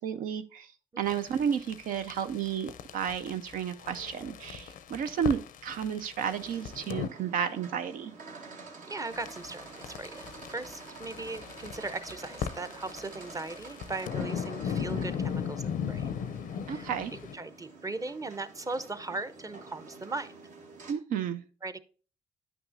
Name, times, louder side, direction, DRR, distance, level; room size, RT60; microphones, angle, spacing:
voice 1, 0.0-8.1 16.7-17.1 20.9-21.4, right 8 dB, 85° right, 9 dB, 0.4 m, -32 dB
sound 1, 1.1-7.1 9.1-17.3, left 7 dB, 85° left, 0.5 m, -38 dB
sound 2, 6.2-20.9, right 3 dB, 65° right, 1.2 m, -48 dB
voice 2, 8.9-16.1 16.7-16.9 17.3-20.3 21.6-21.8, right 3 dB, 25° right, 13 dB, 0.6 m, -38 dB
9.1 x 5.9 x 2.6 m, 0.38 s
cardioid pair, 60°, 14 cm